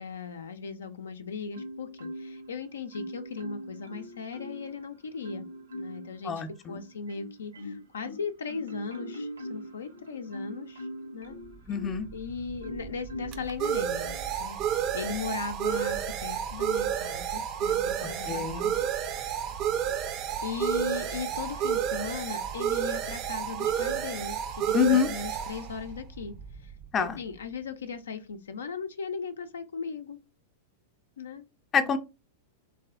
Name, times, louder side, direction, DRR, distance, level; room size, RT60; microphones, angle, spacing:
voice 1, 0.0-5.5 5.7-6.3 6.7-10.9 11.1-11.4 12.1-14.1 14.4-18.9 20.4-26.7 27.0-30.2 31.2-31.5 31.7-32.0, left 5 dB, 80° left, 0.4 m, -38 dB
Marimba xylophone, 1.5-2.5 2.9-4.8 5.2-6.1 6.7-12.1 12.6-13.5 14.0-14.3, equal, 90° right, 0.7 m, -41 dB
voice 2, 6.2-6.8 11.7-12.1 18.0-18.7 24.7-25.1 26.9-27.2 31.7-32.0, left 7 dB, 25° left, 0.5 m, -26 dB
sound 1, 11.7-27.1, right 9 dB, 40° right, 0.4 m, -31 dB
3.2 x 2.6 x 2.4 m
hypercardioid pair, 100°, 0 cm